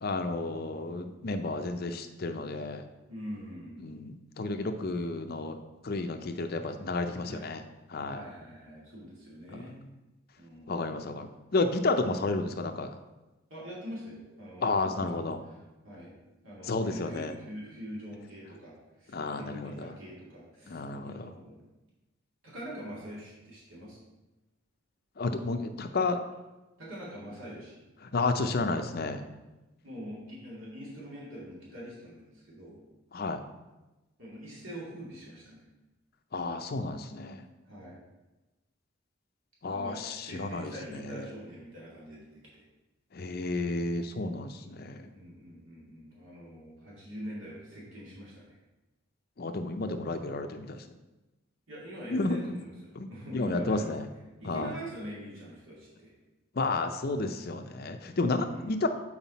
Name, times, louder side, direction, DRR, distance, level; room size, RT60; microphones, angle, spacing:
voice 1, 0.0-2.8 3.8-5.6 5.8-7.6 7.9-8.2 9.5-9.6 10.7-11.3 11.5-12.9 14.6-15.4 16.6-17.3 19.1-19.9 20.7-21.3 25.2-26.2 28.1-29.2 33.1-33.4 36.3-37.4 39.6-41.2 43.1-45.1 49.4-50.8 52.1-52.4 53.0-53.1 53.3-54.0 54.4-54.7 56.6-58.9, left 3 dB, 50° left, 7 dB, 0.5 m, -31 dB
voice 2, 3.1-3.8 7.3-7.5 8.1-9.9 10.4-11.1 13.5-15.6 15.8-16.1 16.4-21.6 22.4-24.0 26.8-27.8 29.8-32.8 34.2-35.6 37.7-38.0 39.7-40.0 40.2-42.6 44.5-44.7 45.0-48.6 51.7-53.9 54.4-56.1 58.4-58.8, equal, 75° right, -6 dB, 2.3 m, -44 dB
7.3 x 4.8 x 4.1 m, 1.1 s
head